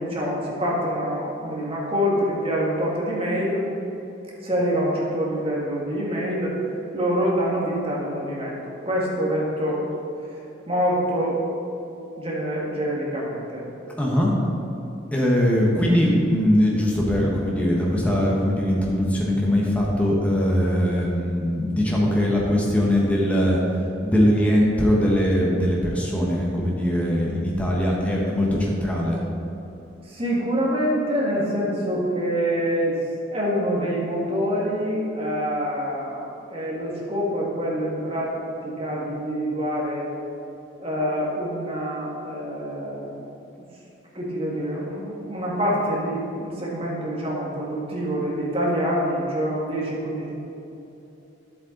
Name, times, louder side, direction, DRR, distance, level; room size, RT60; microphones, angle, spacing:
voice 1, 0.0-3.6 4.4-6.5 6.9-9.8 10.7-11.4 12.2-13.6 30.1-32.9 33.3-38.3 38.5-40.0 40.8-43.1 44.1-50.3, equal, 30° right, -4 dB, 2.0 m, -26 dB
voice 2, 14.0-14.3 15.1-23.6 24.0-29.2, equal, 5° left, -3 dB, 1.3 m, -21 dB
10.5 x 7.8 x 4.0 m, 2.9 s
head